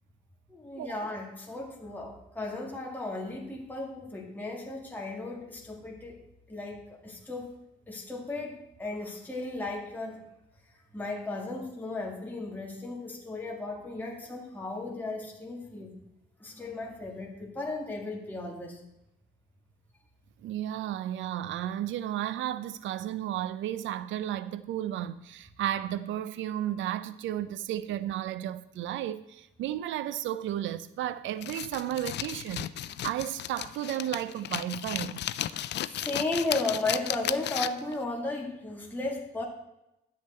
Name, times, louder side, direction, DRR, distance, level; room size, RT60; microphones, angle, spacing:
voice 1, 0.5-6.2 6.5-7.5 7.9-10.2 10.9-16.0 16.4-18.8 35.6-39.4, left 2 dB, 10° left, 2.0 m, -35 dB
voice 2, 20.4-35.2, right 12 dB, 75° right, 0.5 m, -33 dB
sound 1, 31.4-37.9, left 12 dB, 60° left, 0.4 m, -34 dB
9.9 x 8.0 x 4.3 m
cardioid pair, 90°, 20 cm